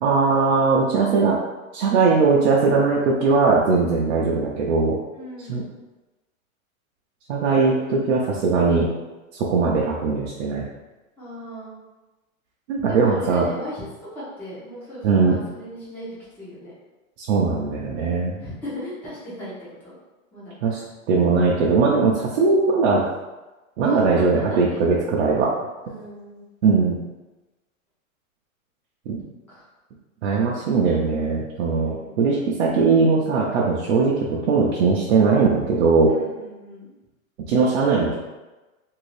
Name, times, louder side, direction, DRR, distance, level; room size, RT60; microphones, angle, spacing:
voice 1, 0.0-1.4 1.7-5.0 5.5-5.6 7.3-8.9 9.4-10.6 12.7-13.5 15.0-15.4 17.2-18.4 20.6-20.8 21.1-23.0 23.8-25.5 26.6-27.0 29.1-29.2 30.2-36.1 37.5-38.2, right 4 dB, 55° right, -4 dB, 0.6 m, -20 dB
voice 2, 5.1-5.7 11.2-11.8 12.9-13.9 14.1-16.1 16.4-16.7 18.4-19.5 19.8-20.0 20.3-20.8 23.8-24.8 25.8-26.4 29.5-29.6 31.6-32.1 36.0-36.9, equal, 5° left, -11 dB, 0.6 m, -37 dB
2.9 x 2.7 x 3.1 m, 1.1 s
supercardioid pair, 155°, 41 cm